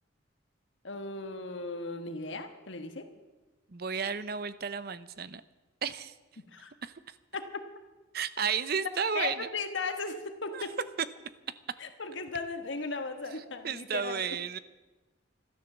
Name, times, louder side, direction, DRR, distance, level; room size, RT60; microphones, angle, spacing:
voice 1, 0.8-3.1 6.5-6.7 7.3-7.4 9.1-10.8 11.8-14.2, left 3 dB, 75° left, 6 dB, 1.4 m, -36 dB
voice 2, 3.7-5.4 5.8-6.1 6.8-6.9 8.1-9.5 10.5-10.6 13.6-14.6, right 6 dB, 55° right, 15 dB, 0.7 m, -32 dB
13.0 x 13.0 x 7.3 m, 1.2 s
head